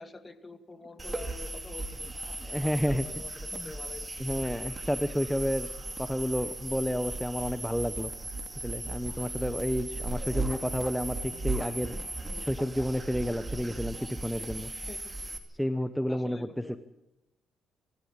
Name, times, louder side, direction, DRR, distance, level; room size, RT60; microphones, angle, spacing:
voice 1, 0.0-2.1 2.6-4.1 14.9-15.0 16.1-16.8, left 3 dB, 25° left, 10 dB, 2.0 m, -46 dB
sound 1, 1.0-15.4, right 2 dB, 20° right, 2.6 m, -37 dB
voice 2, 2.4-3.1 3.5-3.7 4.2-5.7 6.0-8.1 8.6-11.9 12.4-14.7 15.6-16.8, equal, ahead, 11 dB, 0.9 m, -31 dB
25.5 x 13.0 x 8.7 m, 1.0 s
cardioid pair, 90°, 0 cm